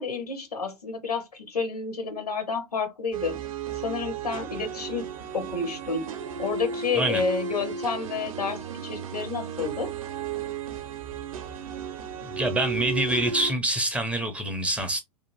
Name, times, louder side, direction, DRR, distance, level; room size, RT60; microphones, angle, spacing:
voice 1, 0.0-3.4 3.8-5.1 5.3-6.1 6.4-9.9, left 4 dB, 80° left, 0.8 m, -30 dB
sound 1, 3.1-13.5, right 7 dB, 60° right, 0.6 m, -34 dB
voice 2, 12.3-15.0, right 1 dB, 5° right, 0.4 m, -26 dB
2.6 x 2.4 x 2.9 m
figure-of-eight pair, 100°, 19 cm